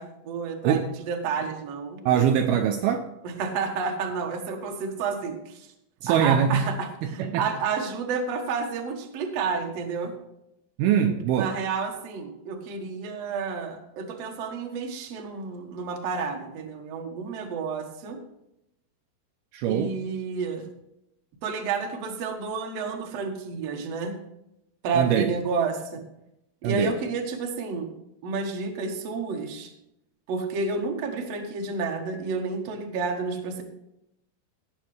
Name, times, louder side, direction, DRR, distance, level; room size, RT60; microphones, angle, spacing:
voice 1, 0.0-2.0 3.2-5.7 6.1-10.1 11.0-18.2 19.7-20.7 21.4-24.1 24.8-26.0 26.6-27.9 28.2-29.7 30.3-33.6, right 4 dB, 60° right, 2 dB, 1.8 m, -30 dB
voice 2, 2.1-3.1 6.0-6.7 7.0-7.5 10.8-11.5 19.5-20.0 24.9-25.3 26.6-27.0, right 8 dB, 80° right, 6 dB, 2.3 m, -23 dB
17.0 x 7.0 x 3.3 m, 0.83 s
omnidirectional pair, 4.8 m